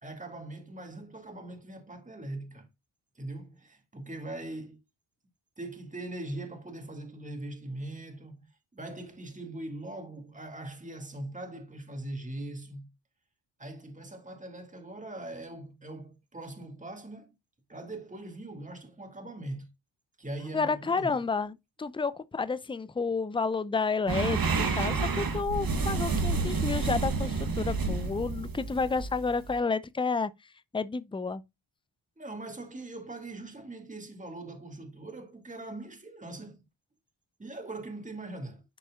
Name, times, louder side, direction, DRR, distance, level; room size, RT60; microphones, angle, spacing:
voice 1, 0.0-2.7 3.2-4.8 5.6-12.9 13.6-17.3 17.7-19.7 20.2-21.2 32.2-36.6 37.4-38.6, right 2 dB, 15° right, 2.0 m, -41 dB
voice 2, 20.5-24.4 24.7-30.3 30.7-31.4, left 4 dB, 10° left, 0.5 m, -30 dB
sound 1, 24.1-29.6, right 4 dB, 45° right, 1.5 m, -29 dB
11.0 x 4.1 x 2.3 m
supercardioid pair, 55°, 49 cm